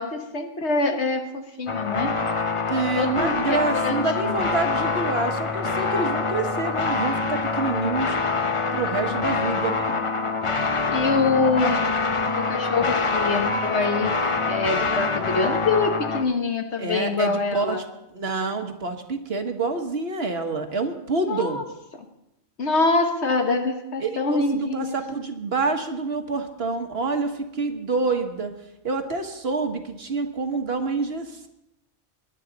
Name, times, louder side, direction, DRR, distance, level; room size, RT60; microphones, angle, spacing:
voice 1, 0.0-2.1 3.0-3.4 3.7-4.5 9.1-9.8 10.9-12.0 12.3-14.1 14.5-17.8 21.2-21.6 22.6-24.9, left 3 dB, 65° left, 5 dB, 1.6 m, -25 dB
sound 1, 1.7-16.2, left 4 dB, 35° left, 0.6 m, -25 dB
voice 2, 2.7-8.2 8.7-9.9 16.8-17.8 18.1-21.6 24.0-28.5 28.8-31.5, right 3 dB, 55° right, 6 dB, 1.4 m, -27 dB
21.0 x 10.5 x 4.0 m, 0.87 s
omnidirectional pair, 1.3 m